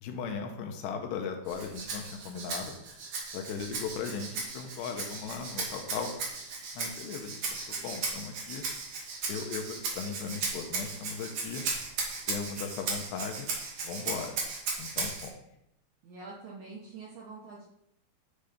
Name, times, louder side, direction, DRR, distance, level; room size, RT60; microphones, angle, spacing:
voice 1, 0.0-2.7 3.3-6.1 6.7-8.6 9.3-11.6 12.3-13.5 13.8-14.4 14.8-15.3, left 6 dB, 80° left, 4 dB, 3.0 m, -37 dB
Rattle (instrument), 1.5-15.3, right 4 dB, 55° right, 2.4 m, -36 dB
voice 2, 16.0-17.6, right 4 dB, 75° right, -4 dB, 1.8 m, -45 dB
9.8 x 3.3 x 5.1 m, 0.79 s
omnidirectional pair, 4.9 m